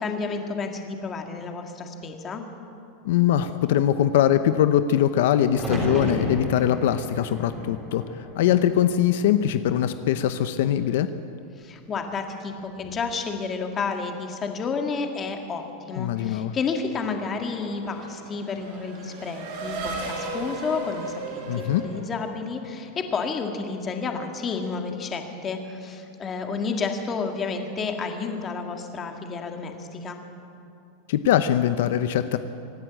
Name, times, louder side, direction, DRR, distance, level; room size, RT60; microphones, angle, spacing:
voice 1, 0.0-2.4 11.6-30.2, left 4 dB, 20° left, 4 dB, 1.8 m, -31 dB
voice 2, 3.0-11.1 16.0-16.5 21.5-21.8 31.1-32.4, left 11 dB, 65° left, 11 dB, 0.8 m, -22 dB
sound 1, 5.5-9.6 9.9-10.7 12.6-13.1, right 1 dB, 10° right, 3.6 m, -33 dB
Race car auto racing / Accelerating revving vroom, 16.8-22.9, right 3 dB, 55° right, 5.5 m, -36 dB
25.0 x 11.0 x 9.3 m, 2.6 s
supercardioid pair, 165°, 0 cm